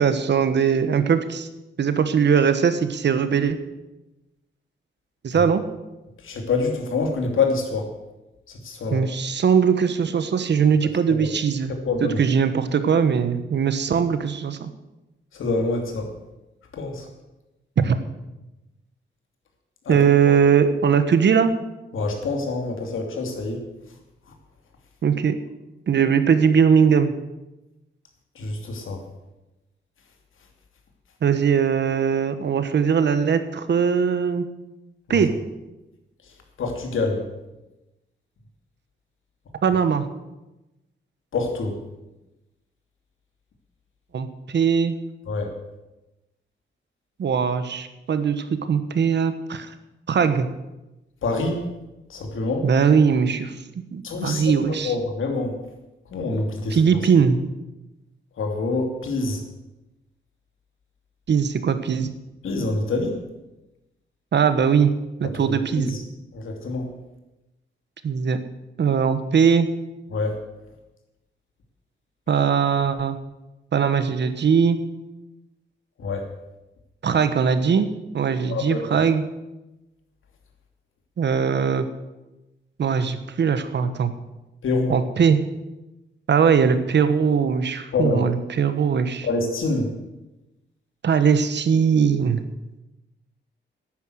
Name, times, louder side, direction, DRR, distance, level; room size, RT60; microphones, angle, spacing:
voice 1, 0.0-1.5 1.8-3.6 5.2-5.6 8.9-11.7 12.0-14.7 17.8-18.0 19.9-21.5 25.0-25.4 25.9-27.1 31.2-34.5 35.1-35.3 39.6-40.1 44.1-44.9 47.2-49.7 50.1-50.5 52.6-53.6 53.9-54.9 56.7-57.4 61.3-62.1 64.3-64.9 65.2-66.0 68.0-68.4 68.8-69.7 72.3-73.2 73.7-74.8 77.0-77.9 78.1-79.2 81.2-81.9 82.8-84.1 84.9-85.4 86.3-89.3 91.0-92.4, right 6 dB, 60° right, 11 dB, 1.1 m, -20 dB
voice 2, 6.2-7.9 8.6-9.0 11.1-11.3 11.8-12.2 15.3-16.1 16.7-17.1 19.9-20.0 20.3-20.4 21.9-23.6 28.4-29.0 35.1-35.2 36.6-37.2 41.3-41.7 45.3-45.5 51.2-51.6 52.1-52.7 54.0-55.5 56.1-56.8 58.4-59.4 62.4-63.2 65.8-66.0 66.3-66.9 70.1-70.4 76.0-76.2 78.5-78.8 84.6-84.9 87.9-88.2 89.2-89.9, left 3 dB, 90° left, 3 dB, 2.7 m, -26 dB
11.0 x 9.7 x 7.9 m, 1.0 s
wide cardioid pair, 145°, 20 cm